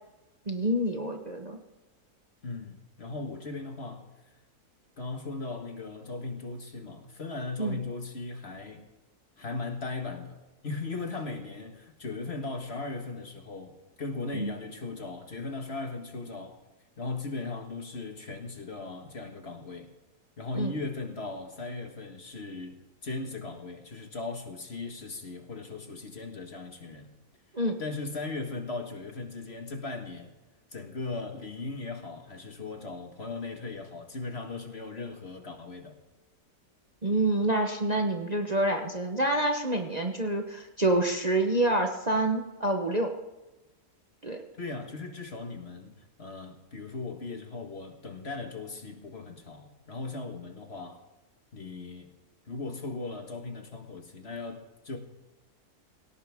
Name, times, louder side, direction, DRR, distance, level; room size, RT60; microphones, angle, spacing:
voice 1, 0.5-1.6 7.6-7.8 14.3-14.5 20.5-20.7 27.5-27.8 37.0-43.1 44.2-44.4, right 1 dB, 30° right, 1.0 m, -27 dB
voice 2, 2.4-4.1 5.0-8.9 9.4-16.6 17.0-19.9 20.4-27.1 27.8-30.3 30.7-36.0 44.3-51.0 51.5-52.1 52.5-55.0, left 3 dB, 40° left, 1.8 m, -38 dB
18.5 x 17.5 x 3.6 m
omnidirectional pair, 1.7 m